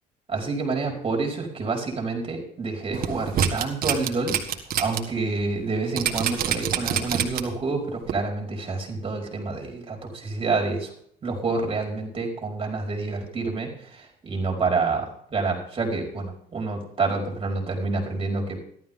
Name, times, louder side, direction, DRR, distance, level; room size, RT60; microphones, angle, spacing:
voice 1, 0.3-4.4 4.8-10.9 11.2-18.6, right 3 dB, 30° right, 0 dB, 4.8 m, -28 dB
sound 1, 2.9-5.0 5.4-5.5 6.0-7.6 8.1-8.2, right 9 dB, 60° right, 1.9 m, -25 dB
14.5 x 12.5 x 3.7 m, 0.66 s
cardioid pair, 110°, 17 cm